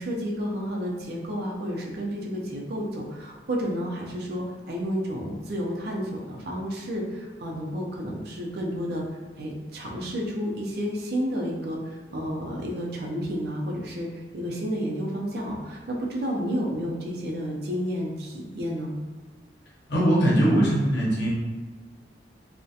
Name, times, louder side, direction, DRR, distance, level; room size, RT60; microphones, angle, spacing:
voice 1, 0.0-9.0 9.4-11.8 12.1-14.1 14.3-18.9, equal, 60° right, -1 dB, 0.5 m, -31 dB
voice 2, 19.9-21.3, right 1 dB, 70° left, -5 dB, 0.7 m, -21 dB
2.3 x 2.1 x 2.7 m, 1.3 s
head